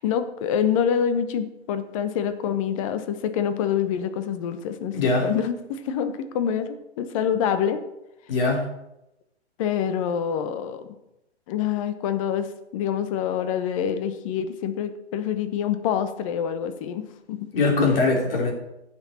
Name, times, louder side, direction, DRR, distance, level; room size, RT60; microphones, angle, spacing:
voice 1, 0.0-7.8 9.6-10.9 11.5-17.4 17.8-18.0, left 8 dB, 30° left, 10 dB, 1.0 m, -26 dB
voice 2, 4.9-5.3 8.3-8.7 17.5-18.5, left 3 dB, 55° left, 0 dB, 3.4 m, -21 dB
15.0 x 6.3 x 4.3 m, 0.89 s
figure-of-eight pair, 130°, 33 cm